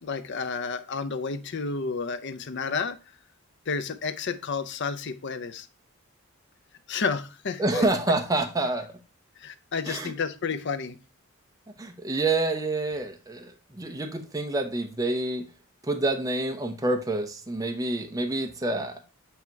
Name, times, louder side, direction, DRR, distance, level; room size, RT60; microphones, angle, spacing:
voice 1, 0.0-3.0 3.7-5.7 6.9-7.9 9.4-11.0, left 5 dB, 55° left, 0.6 m, -31 dB
voice 2, 7.6-8.9 9.9-10.1 11.8-15.5 15.8-19.0, right 2 dB, 15° right, 0.7 m, -27 dB
8.3 x 2.9 x 4.4 m
head